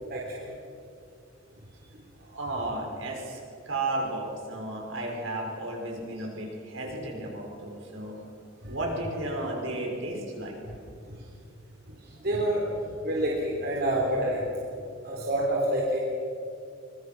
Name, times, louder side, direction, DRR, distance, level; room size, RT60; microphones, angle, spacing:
voice 1, 0.1-0.5 8.6-8.8 11.0-11.2 11.9-14.5 15.0-16.0, right 1 dB, 50° right, -3 dB, 3.6 m, -28 dB
voice 2, 2.2-3.4 3.6-8.2 8.7-10.6, right 2 dB, 75° right, 0 dB, 6.0 m, -33 dB
24.0 x 23.0 x 6.2 m, 2.4 s
head